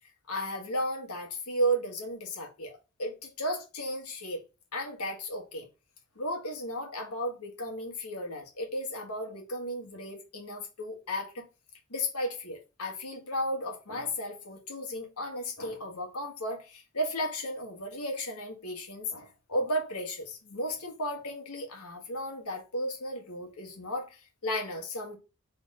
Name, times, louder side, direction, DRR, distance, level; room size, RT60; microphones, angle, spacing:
voice 1, 0.3-4.4 4.7-5.7 6.1-11.4 11.9-25.2, equal, 90° left, 1.4 m, -34 dB
3.9 x 3.5 x 3.6 m
head